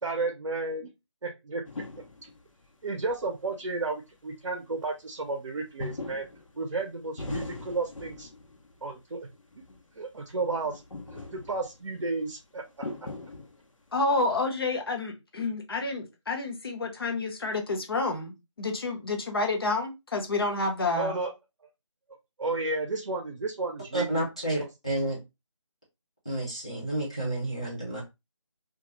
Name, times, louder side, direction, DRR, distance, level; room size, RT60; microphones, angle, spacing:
voice 1, 0.0-0.9 1.2-1.6 2.8-6.3 6.6-8.3 8.8-9.3 10.0-10.8 11.1-12.9 21.0-21.3 22.4-24.3, right 3 dB, 60° right, 0.6 m, -32 dB
sound 1, 1.6-2.6 3.1-3.2 3.6-3.7 5.8-8.8 9.2-9.8 10.2-12.0 12.7-13.9, left 2 dB, 85° left, 0.7 m, -40 dB
voice 2, 13.9-18.3 18.6-21.2, left 3 dB, 50° left, 0.7 m, -29 dB
voice 3, 23.9-25.2 26.2-28.0, right 1 dB, 10° left, 0.4 m, -30 dB
2.2 x 2.0 x 3.0 m
figure-of-eight pair, 170°, 16 cm